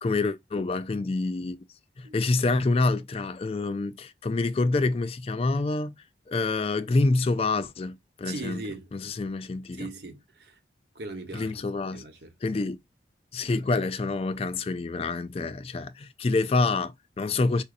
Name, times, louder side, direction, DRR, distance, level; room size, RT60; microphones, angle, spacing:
voice 1, 0.0-1.6 2.0-5.9 6.3-8.6 8.9-9.9 11.3-12.0 12.4-12.8 13.3-17.6, left 3 dB, 30° left, 0.3 m, -27 dB
voice 2, 8.2-8.9 9.7-10.6 10.9-11.5 11.9-12.3, right 2 dB, 60° right, 1.0 m, -39 dB
5.0 x 2.6 x 2.4 m
head